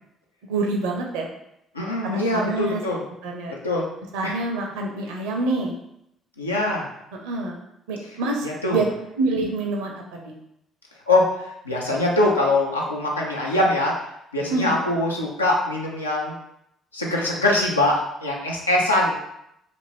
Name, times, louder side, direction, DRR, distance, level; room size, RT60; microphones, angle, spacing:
voice 1, 0.5-1.3 2.0-2.8 3.2-3.5 4.1-5.7 7.2-7.6 7.9-8.5 8.7-8.9 9.2-10.3 14.5-14.8, right 2 dB, 70° right, 1 dB, 0.5 m, -26 dB
voice 2, 1.7-3.0 3.5-3.9 4.2-4.4 6.4-6.9 8.4-8.8 11.1-13.9 14.3-16.4 16.9-19.2, left 2 dB, 90° left, -3 dB, 0.5 m, -23 dB
2.5 x 2.5 x 3.2 m, 0.79 s
figure-of-eight pair, 50°, 0 cm